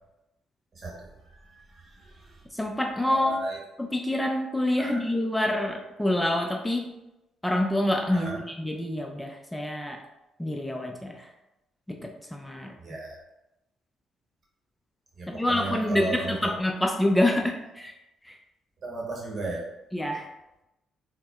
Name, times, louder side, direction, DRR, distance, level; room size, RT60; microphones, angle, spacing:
voice 1, 0.7-2.4 3.0-3.6 4.8-5.0 8.1-8.4 12.8-13.2 15.2-16.5 18.8-19.7, right 2 dB, 45° right, -2 dB, 1.0 m, -35 dB
voice 2, 2.5-3.4 3.8-6.9 7.4-10.0 10.4-11.3 11.9-12.7 15.3-17.9 18.2-18.4 19.9-20.3, left 1 dB, 10° left, 2 dB, 0.4 m, -27 dB
4.2 x 2.0 x 2.3 m, 0.93 s
hypercardioid pair, 45°, 0 cm